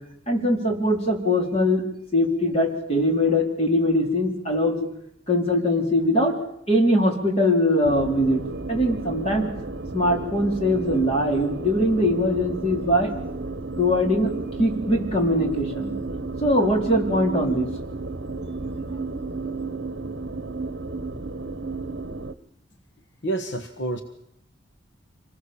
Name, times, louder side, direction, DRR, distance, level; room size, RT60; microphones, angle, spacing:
voice 1, 0.3-1.8 2.1-4.9 5.3-6.3 6.7-9.5 9.9-13.1 13.8-14.3 14.6-15.9 16.4-17.7, left 1 dB, 30° left, 2 dB, 4.3 m, -22 dB
sound 1, 7.8-22.3, right 3 dB, 55° right, 1.1 m, -33 dB
voice 2, 23.2-24.0, right 2 dB, 65° left, 8 dB, 1.4 m, -28 dB
26.0 x 19.5 x 7.2 m, 0.75 s
head